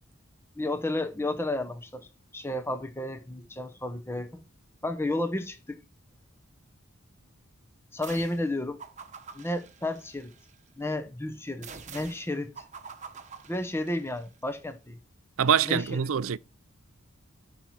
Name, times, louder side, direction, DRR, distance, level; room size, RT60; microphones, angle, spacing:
voice 1, 0.6-2.1 2.3-4.4 4.8-5.8 7.9-8.8 9.3-10.3 10.8-12.5 13.5-15.0 15.7-15.9, left 1 dB, 10° left, 0.9 m, -32 dB
sound 1, 8.0-8.5 8.8-10.5 11.6-14.2, right 5 dB, 35° right, 1.1 m, -46 dB
voice 2, 15.4-16.4, right 8 dB, 75° right, 0.5 m, -24 dB
13.0 x 5.7 x 4.7 m
head